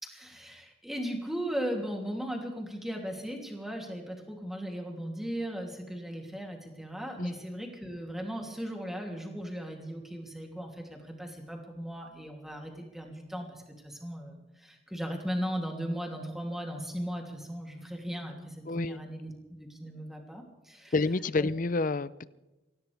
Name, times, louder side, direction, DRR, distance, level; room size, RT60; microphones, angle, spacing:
voice 1, 0.0-19.3 19.6-20.9 21.4-21.5, equal, ahead, 1 dB, 2.9 m, -37 dB
voice 2, 18.7-19.0 20.9-22.3, left 3 dB, 45° left, 18 dB, 0.5 m, -29 dB
24.0 x 17.0 x 3.5 m, 1.1 s
head